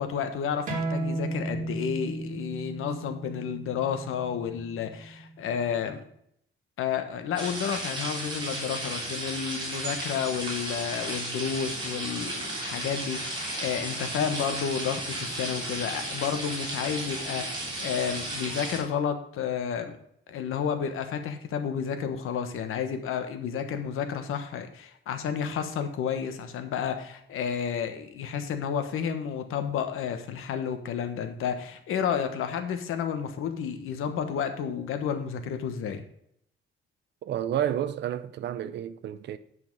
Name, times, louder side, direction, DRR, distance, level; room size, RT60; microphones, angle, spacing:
voice 1, 0.0-6.0 6.8-20.0 20.3-36.0, left 7 dB, 85° left, 1.3 m, -31 dB
sound 1, 0.7-5.8, right 2 dB, 40° right, 2.5 m, -35 dB
sound 2, 7.3-18.8, right 1 dB, 20° right, 3.5 m, -34 dB
voice 2, 37.2-39.4, right 10 dB, 55° right, 0.6 m, -30 dB
9.5 x 5.7 x 5.4 m
cardioid pair, 175°, 21 cm